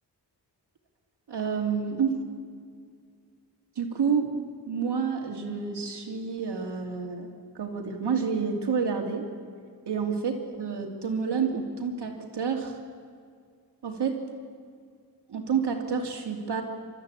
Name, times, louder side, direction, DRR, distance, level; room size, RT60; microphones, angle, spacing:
voice 1, 1.3-2.2 3.8-7.3 7.5-9.3 9.9-12.7 13.8-14.2 15.3-16.6, right 6 dB, 80° right, 2 dB, 2.8 m, -29 dB
30.0 x 13.5 x 8.5 m, 2.1 s
wide cardioid pair, 165°, 40 cm